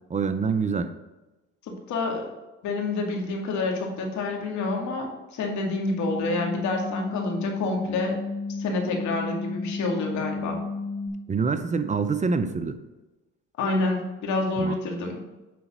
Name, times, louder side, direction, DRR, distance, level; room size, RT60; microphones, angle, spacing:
voice 1, 0.1-0.9 11.3-12.8 14.6-14.7, right 5 dB, 25° right, 9 dB, 0.5 m, -25 dB
voice 2, 1.7-2.3 2.6-8.2 8.6-10.6 13.6-15.2, left 2 dB, 70° left, 1 dB, 2.2 m, -28 dB
sound 1, 5.6-11.1, left 4 dB, ahead, 3.1 m, -32 dB
9.4 x 4.0 x 6.0 m, 1.1 s
cardioid pair, 100°, 30 cm